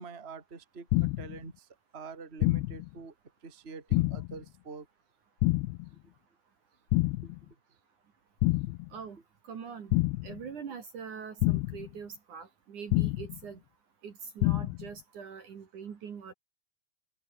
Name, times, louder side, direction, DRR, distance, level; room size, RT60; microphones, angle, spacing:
voice 1, 0.0-3.1 3.4-4.9 7.2-7.3, right 4 dB, 15° right, 2.6 m, -45 dB
sound 1, 0.9-1.4 2.4-2.9 3.9-4.4 5.4-5.9 6.9-7.4 8.4-8.9 9.9-10.4 11.4-11.9 12.9-13.4 14.4-14.9, left 22 dB, 85° left, 2.7 m, -27 dB
voice 2, 9.5-9.9 10.2-13.6 14.0-16.3, right 6 dB, 50° right, 3.4 m, -43 dB
open air
omnidirectional pair, 5.1 m